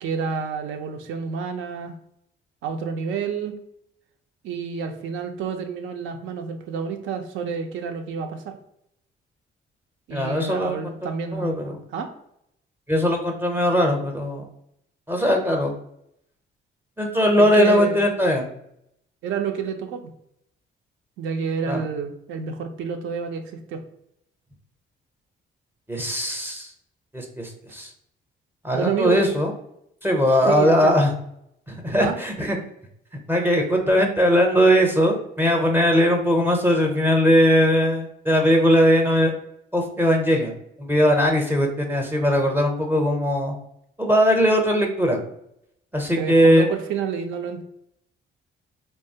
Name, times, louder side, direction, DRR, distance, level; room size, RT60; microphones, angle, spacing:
voice 1, 0.0-1.9 2.6-3.6 4.4-8.6 10.1-12.1 17.4-18.0 19.2-20.1 21.2-23.4 23.7-23.8 28.7-29.3 30.4-31.0 32.0-32.2 46.1-47.6, right 6 dB, 80° right, 5 dB, 0.5 m, -29 dB
voice 2, 10.1-10.8 11.3-11.8 12.9-14.4 15.1-15.7 17.0-18.5 21.7-21.8 25.9-26.7 27.1-27.9 28.6-29.5 30.0-31.1 31.7-32.6 33.3-39.3 39.7-43.5 44.0-45.2 45.9-46.6, equal, 10° right, 3 dB, 0.6 m, -20 dB
2.8 x 2.3 x 2.7 m, 0.76 s
cardioid pair, 90°, 20 cm